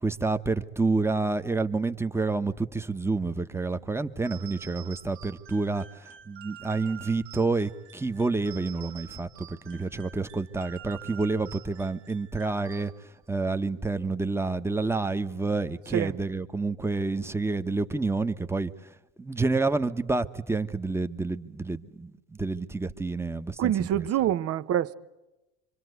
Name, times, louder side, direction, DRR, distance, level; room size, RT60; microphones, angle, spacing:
voice 1, 0.0-12.9 13.3-18.7 19.2-24.1, right 3 dB, 5° right, 1.3 m, -29 dB
sound 1, 4.2-13.3, right 11 dB, 65° right, 2.3 m, -48 dB
voice 2, 23.6-25.0, right 11 dB, 45° right, 1.1 m, -26 dB
25.5 x 25.5 x 8.1 m
hypercardioid pair, 90°, 33 cm